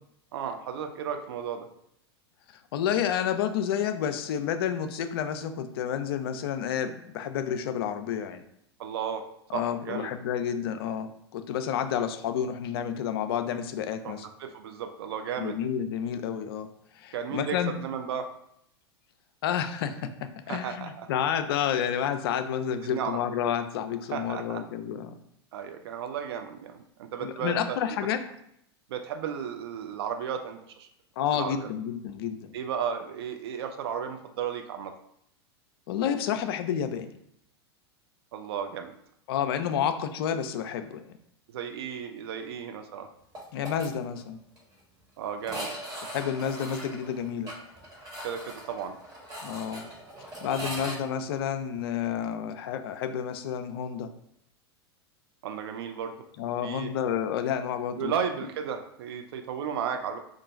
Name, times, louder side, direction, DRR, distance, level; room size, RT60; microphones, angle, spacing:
voice 1, 0.3-1.7 8.8-9.3 9.5-10.1 14.0-14.1 14.4-15.6 17.1-18.3 20.5-21.1 22.8-23.2 24.1-24.6 25.5-28.1 28.9-30.9 31.3-31.7 32.5-34.9 38.3-38.9 39.8-39.9 41.5-43.1 45.2-45.7 48.2-49.0 55.4-56.2 56.6-56.9 58.0-60.2, right 7 dB, 70° right, 6 dB, 0.4 m, -34 dB
voice 2, 2.7-8.4 9.5-14.3 15.4-16.7 16.9-17.7 19.4-20.1 20.5-25.2 27.2-28.2 31.2-32.5 35.9-37.1 39.3-41.1 43.5-44.4 46.1-47.5 49.4-49.9 50.4-54.1 56.4-58.1, left 8 dB, 60° left, 8 dB, 0.4 m, -30 dB
sound 1, 43.3-43.9 44.2-44.3 44.6-44.7 45.4-51.0, right 1 dB, 25° right, 1.3 m, -39 dB
2.5 x 2.3 x 3.9 m, 0.73 s
hypercardioid pair, 90°, 14 cm